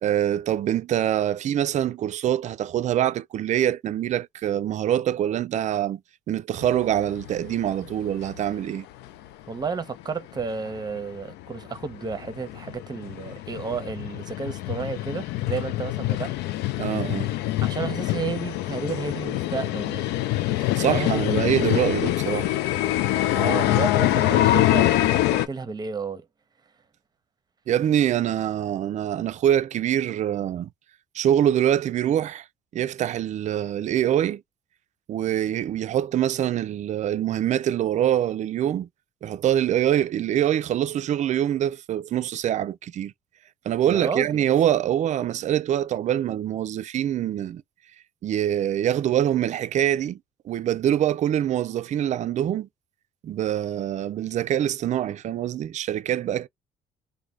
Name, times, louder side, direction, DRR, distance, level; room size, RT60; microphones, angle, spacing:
voice 1, 0.0-6.0 6.3-8.9 16.8-17.3 20.8-22.5 27.7-30.7 31.1-32.5 32.7-34.4 35.1-38.9 39.2-43.1 43.7-47.6 48.2-50.2 50.5-52.7 53.2-56.5, right 11 dB, 45° right, 0.4 m, -24 dB
sound 1, 6.6-8.7 9.0-9.1 9.6-9.7 10.0-10.1 10.4-25.5, left 15 dB, 80° left, 0.4 m, -25 dB
voice 2, 9.5-16.4 17.6-20.1 20.9-21.2 23.3-26.2 43.9-44.4, right 5 dB, 25° right, 0.8 m, -32 dB
3.2 x 2.2 x 3.6 m
cardioid pair, 110°, 17 cm